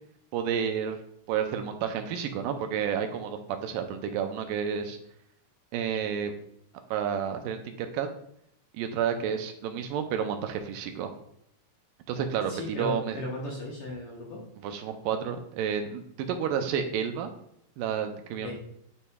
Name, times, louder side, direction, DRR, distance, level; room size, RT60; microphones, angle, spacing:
voice 1, 0.3-1.0 1.3-5.0 5.7-6.3 6.9-8.1 8.7-11.1 12.1-13.2 14.6-17.3 17.8-18.5, right 8 dB, 80° right, 6 dB, 2.2 m, -30 dB
voice 2, 12.5-14.4 18.4-18.5, left 1 dB, 70° left, -3 dB, 1.4 m, -36 dB
10.0 x 4.2 x 2.3 m, 0.72 s
omnidirectional pair, 4.0 m